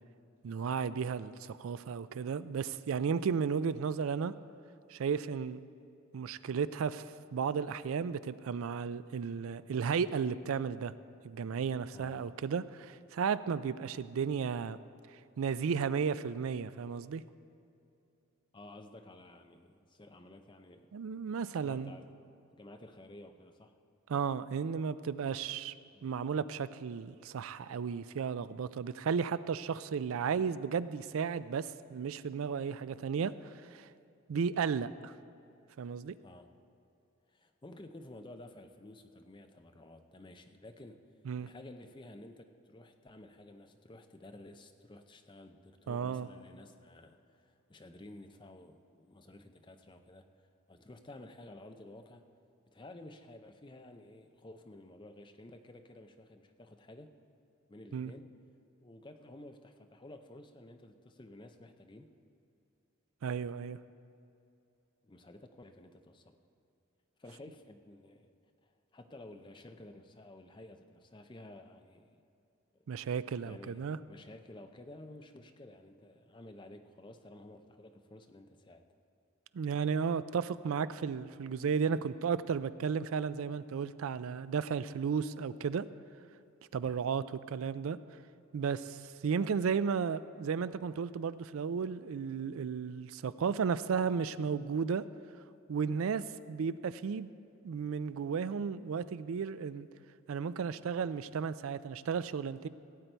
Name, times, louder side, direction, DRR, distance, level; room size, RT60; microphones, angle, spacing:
voice 1, 0.4-4.3 4.9-5.6 6.1-10.9 11.2-14.8 15.4-17.2 20.9-21.9 24.1-25.7 26.0-33.9 34.3-35.1 35.8-36.1 41.3-41.5 45.9-46.3 57.9-58.1 63.2-63.8 72.9-74.0 79.5-85.9 86.7-88.0 88.5-95.0 95.7-97.3 97.6-99.9 100.3-102.7, right 6 dB, 70° right, 15 dB, 0.4 m, -34 dB
voice 2, 11.9-12.2 18.5-20.9 21.6-22.0 22.5-23.8 25.9-26.2 36.2-36.5 37.3-41.0 41.4-50.3 50.7-52.2 52.7-57.2 57.7-58.3 58.8-62.1 65.0-66.4 67.2-68.3 68.6-72.2 72.9-73.1 73.4-78.8 86.8-87.1, left 1 dB, 20° left, 7 dB, 0.5 m, -53 dB
16.5 x 8.2 x 4.5 m, 2.6 s
head